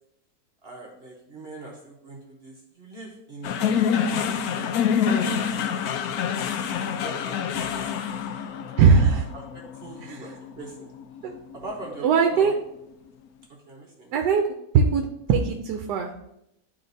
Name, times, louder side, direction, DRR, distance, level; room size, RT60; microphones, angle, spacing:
voice 1, 0.6-5.9 6.5-7.4 7.7-8.0 8.3-8.5 9.0-10.9 11.6-12.5 13.7-14.1, right 2 dB, 40° right, -2 dB, 1.1 m, -41 dB
sound 1, 3.4-11.9, left 7 dB, 70° left, 1.0 m, -27 dB
voice 2, 8.8-9.3 10.0-10.2 11.2-11.3 12.0-12.5 14.1-14.5 14.7-16.3, right 5 dB, 75° right, 4 dB, 1.2 m, -20 dB
11.0 x 3.9 x 2.6 m, 0.79 s
omnidirectional pair, 1.8 m